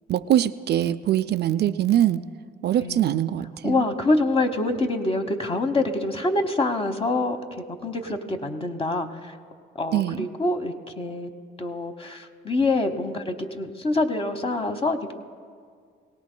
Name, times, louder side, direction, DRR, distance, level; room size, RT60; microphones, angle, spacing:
voice 1, 0.1-2.2 2.6-3.8 9.9-10.2, right 11 dB, 55° right, 11 dB, 0.4 m, -23 dB
voice 2, 2.8-3.3 3.6-9.3 9.7-11.3 11.6-15.1, left 2 dB, 30° left, 6 dB, 1.1 m, -26 dB
22.5 x 18.0 x 2.2 m, 2.1 s
cardioid pair, 90°, 20 cm